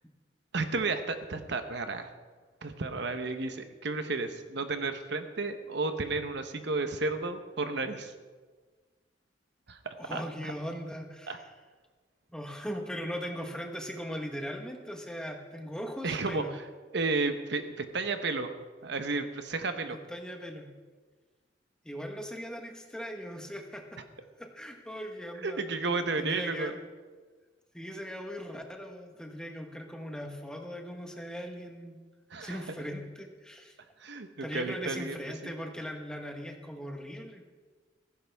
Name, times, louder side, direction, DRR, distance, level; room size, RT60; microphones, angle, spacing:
voice 1, 0.5-2.1 2.6-8.1 9.7-10.5 11.3-11.4 16.0-16.6 16.9-18.5 18.8-20.0 25.4-26.7 32.3-32.6 34.0-35.5, right 3 dB, 65° right, 8 dB, 1.0 m, -32 dB
voice 2, 10.0-11.5 12.3-16.5 19.9-20.7 21.8-24.0 24.4-25.6 26.2-26.8 27.7-32.0 32.4-33.7 34.4-37.4, equal, 5° left, 3 dB, 1.3 m, -39 dB
15.5 x 15.5 x 3.6 m, 1.4 s
head